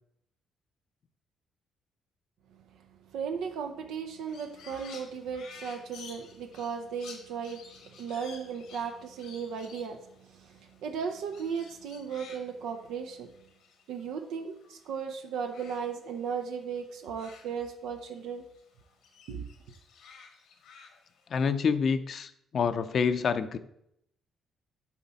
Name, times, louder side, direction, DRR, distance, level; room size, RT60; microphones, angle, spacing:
voice 1, 3.1-13.3 13.9-18.4 19.3-19.5, right 6 dB, 85° right, 5 dB, 0.6 m, -36 dB
Crow, 4.3-15.0 15.2-18.2 18.5-21.2, left 5 dB, 85° left, 1.3 m, -53 dB
voice 2, 21.3-23.6, left 6 dB, 55° left, 11 dB, 0.5 m, -27 dB
7.1 x 4.4 x 4.1 m, 0.75 s
cardioid pair, 90°, 0 cm